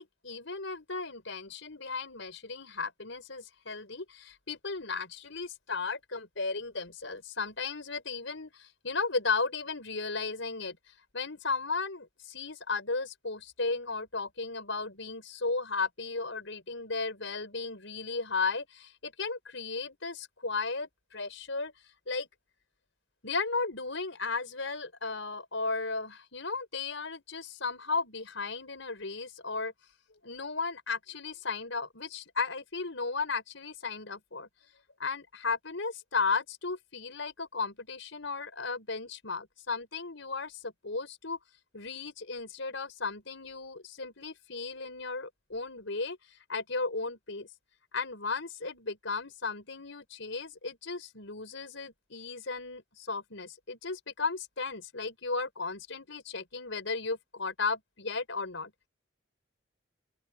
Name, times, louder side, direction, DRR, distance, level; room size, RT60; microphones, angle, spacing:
voice 1, 0.0-10.8 11.1-21.7 22.1-22.3 23.2-29.7 30.2-34.5 35.0-41.4 41.7-46.2 46.5-47.5 47.9-58.7, left 4 dB, 75° left, 4.6 m, -35 dB
open air
head